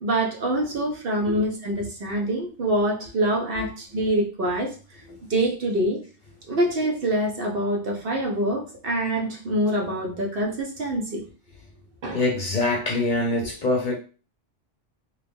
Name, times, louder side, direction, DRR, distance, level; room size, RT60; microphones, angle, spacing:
voice 1, 0.0-4.7 5.3-6.0 6.5-11.2 12.0-12.2, right 1 dB, 55° right, 0.8 m, -25 dB
voice 2, 12.1-13.9, left 2 dB, 50° left, 0.7 m, -25 dB
3.0 x 2.4 x 3.4 m
omnidirectional pair, 1.3 m